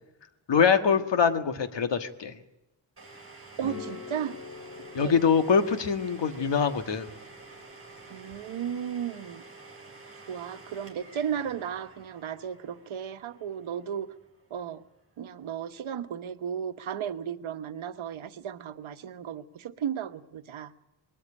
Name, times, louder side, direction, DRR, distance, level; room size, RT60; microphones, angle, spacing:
voice 1, 0.5-2.3 4.9-7.1, left 6 dB, 65° left, 8 dB, 1.6 m, -24 dB
Domestic sounds home sounds, 3.0-14.6, right 3 dB, 30° right, 7.0 m, -50 dB
sound 1, 3.6-8.8, left 5 dB, 35° left, 3.2 m, -46 dB
voice 2, 3.6-4.4 5.0-5.1 8.1-9.4 10.1-14.1 14.5-14.8 15.2-20.7, right 8 dB, 85° right, 10 dB, 1.2 m, -35 dB
21.5 x 13.5 x 10.0 m, 1.0 s
wide cardioid pair, 155°, 47 cm